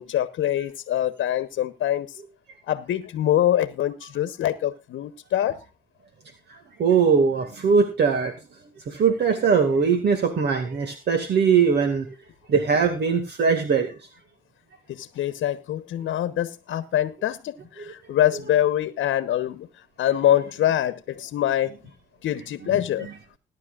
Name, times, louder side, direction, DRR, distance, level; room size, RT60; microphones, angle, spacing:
voice 1, 0.0-2.2 2.7-5.6 14.9-19.7 20.0-21.7 22.2-23.1, left 11 dB, 75° left, 1.1 m, -24 dB
voice 2, 6.5-8.3 8.9-12.1 12.5-13.9 17.8-17.9, right 6 dB, 60° right, 2.2 m, -21 dB
21.0 x 11.0 x 2.5 m
cardioid pair, 90°, 20 cm